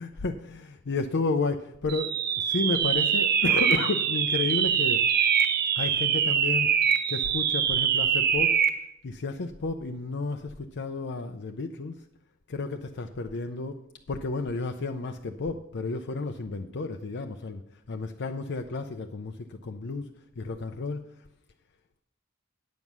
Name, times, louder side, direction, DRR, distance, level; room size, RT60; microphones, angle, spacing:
voice 1, 0.0-5.1 5.8-6.7 7.1-8.8 9.0-12.0 12.5-13.7 14.1-17.6 17.9-20.1 20.4-21.3, left 3 dB, 55° left, 5 dB, 0.6 m, -32 dB
sound 1, 1.9-8.8, right 7 dB, 50° right, 0.7 m, -24 dB
9.4 x 7.2 x 6.1 m, 0.78 s
head